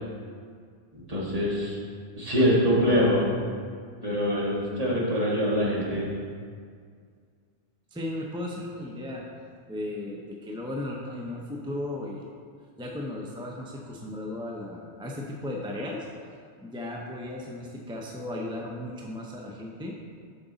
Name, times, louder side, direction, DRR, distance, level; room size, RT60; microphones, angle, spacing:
voice 1, 0.9-1.8 2.2-3.3 4.0-6.1, equal, 35° right, -6 dB, 1.7 m, -24 dB
voice 2, 7.9-9.2 9.7-12.3 12.8-16.1 16.6-20.0, left 1 dB, 5° right, -2 dB, 0.5 m, -35 dB
7.7 x 5.9 x 4.0 m, 2.1 s
omnidirectional pair, 1.1 m